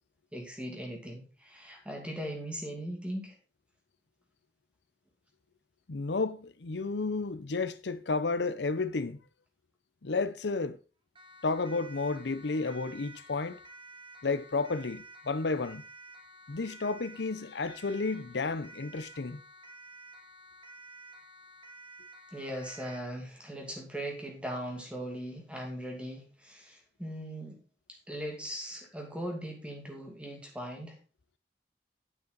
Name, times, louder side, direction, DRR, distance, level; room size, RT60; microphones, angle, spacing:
voice 1, 0.3-3.4 22.3-27.6 27.9-31.0, equal, 5° right, 2.4 m, -39 dB
voice 2, 5.9-9.2 10.0-10.8 11.4-13.6 14.2-15.8 16.5-19.4, left 3 dB, 80° left, 0.7 m, -32 dB
Siren, 11.2-23.1, right 2 dB, 30° right, 1.6 m, -51 dB
9.8 x 8.0 x 4.0 m
head